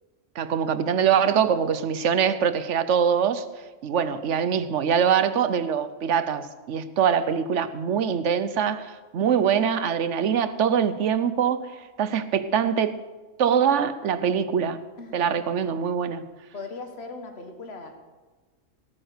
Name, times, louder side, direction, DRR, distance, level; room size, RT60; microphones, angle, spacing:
voice 1, 0.4-3.4 3.8-13.0 13.4-14.8 15.1-16.2, right 7 dB, 70° right, 13 dB, 1.1 m, -23 dB
voice 2, 16.5-17.9, left 3 dB, 55° left, 5 dB, 1.8 m, -38 dB
17.0 x 9.4 x 6.7 m, 1.3 s
omnidirectional pair, 1.3 m